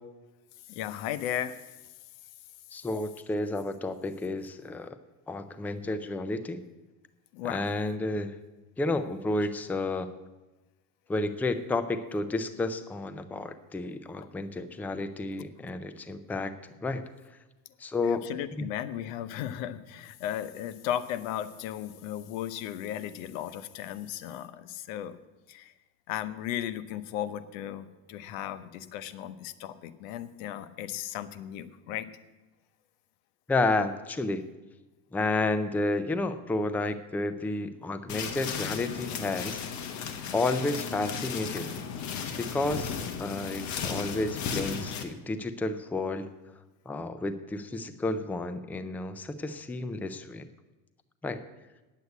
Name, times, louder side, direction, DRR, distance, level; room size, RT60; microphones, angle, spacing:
voice 1, 0.7-1.6 7.3-7.7 18.0-25.2 25.5-25.7 26.1-32.1, left 11 dB, 85° left, 13 dB, 0.9 m, -35 dB
voice 2, 2.7-5.0 5.3-6.6 7.4-8.3 8.8-10.1 11.1-16.5 16.8-17.0 17.8-18.2 18.6-18.7 33.5-34.4 35.1-39.6 40.3-41.9 42.4-46.3 46.9-50.4 51.2-51.4, left 2 dB, 5° left, 10 dB, 0.4 m, -31 dB
sound 1, 38.1-45.0, left 7 dB, 45° left, 1.3 m, -35 dB
9.3 x 8.1 x 8.3 m, 1.1 s
cardioid pair, 140°, 39 cm